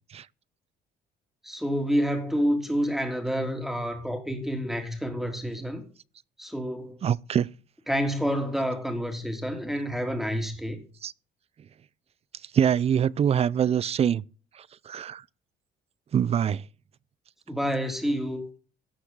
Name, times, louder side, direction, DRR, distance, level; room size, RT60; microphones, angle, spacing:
voice 1, 1.4-5.8 6.4-7.0 7.9-10.8 17.5-18.4, equal, ahead, 3.1 m, -28 dB
voice 2, 7.0-7.5 11.0-11.1 12.5-14.2 14.9-15.2 16.1-16.6, right 8 dB, 35° right, 0.5 m, -24 dB
17.5 x 5.9 x 3.9 m
cardioid pair, 110°, 17 cm